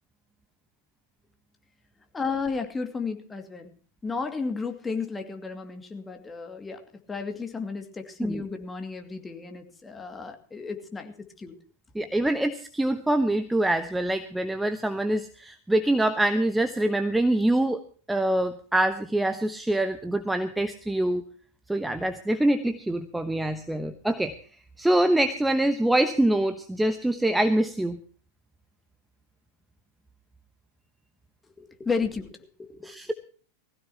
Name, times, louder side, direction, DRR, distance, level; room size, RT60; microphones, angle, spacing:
voice 1, 2.1-3.7 4.0-6.8 7.1-11.6 31.6-32.8, left 4 dB, 15° left, 5 dB, 2.4 m, -33 dB
voice 2, 11.9-17.8 18.1-21.2 21.7-24.3 24.8-28.0 32.8-33.1, right 1 dB, 5° right, 8 dB, 1.1 m, -25 dB
20.5 x 15.5 x 3.0 m, 0.42 s
figure-of-eight pair, 90°, 0 cm